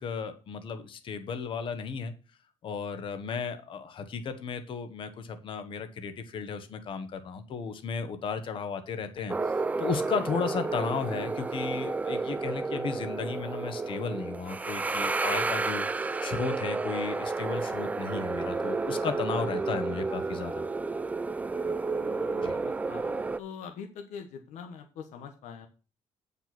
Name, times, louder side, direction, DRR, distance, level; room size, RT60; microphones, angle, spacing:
voice 1, 0.0-2.1 2.6-20.6 22.4-22.6, left 5 dB, 45° left, 9 dB, 1.4 m, -34 dB
sound 1, 9.3-23.4, right 3 dB, 15° right, 0.4 m, -31 dB
voice 2, 21.9-25.7, left 6 dB, 90° left, 5 dB, 1.4 m, -44 dB
9.1 x 5.7 x 6.0 m, 0.33 s
cardioid pair, 155°, 12 cm